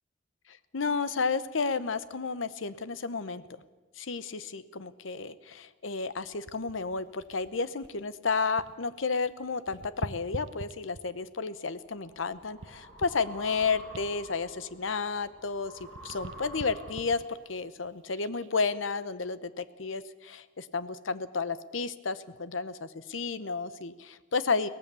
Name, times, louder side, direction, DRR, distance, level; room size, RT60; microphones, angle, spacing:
voice 1, 0.5-3.4 4.0-24.7, left 4 dB, 80° left, 14 dB, 0.9 m, -32 dB
sound 1, 6.2-8.9 9.2-11.3 11.9-15.4 15.7-18.5 19.1-19.3, right 3 dB, 75° right, 0.8 m, -46 dB
sound 2, 11.5-17.3, right 1 dB, 10° left, 7.3 m, -49 dB
23.0 x 18.0 x 7.0 m, 1.2 s
head